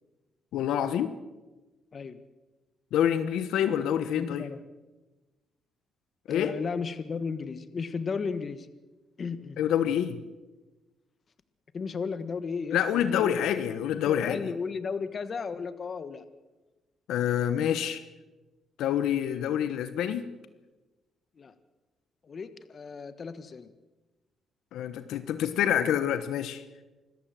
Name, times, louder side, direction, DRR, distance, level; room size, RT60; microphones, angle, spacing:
voice 1, 0.5-1.1 2.9-4.5 6.3-6.5 9.6-10.2 12.7-14.5 17.1-18.0 18.8-20.3 24.7-26.6, left 10 dB, 85° left, 11 dB, 1.2 m, -27 dB
voice 2, 4.1-4.6 6.3-8.7 9.2-9.6 11.7-16.2 21.4-21.5 22.2-23.7, left 5 dB, 45° left, 12 dB, 1.6 m, -35 dB
26.0 x 14.0 x 7.7 m, 1.2 s
cardioid pair, 90°, 0 cm